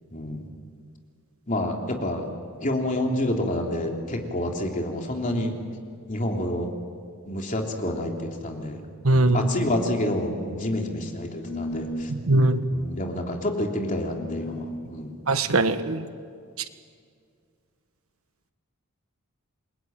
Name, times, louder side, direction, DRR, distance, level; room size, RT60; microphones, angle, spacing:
voice 1, 0.1-0.5 1.5-2.3 2.6-5.5 6.1-6.7 7.3-8.8 9.1-12.1 12.7-15.2, left 1 dB, 35° left, 1 dB, 3.3 m, -28 dB
voice 2, 9.0-9.5 12.1-12.6 15.3-16.1, right 2 dB, 70° right, 10 dB, 1.3 m, -21 dB
sound 1, 9.2-9.8 11.4-12.0 14.1-14.7, left 1 dB, 60° left, 6.7 m, -35 dB
28.5 x 22.0 x 9.2 m, 2.1 s
head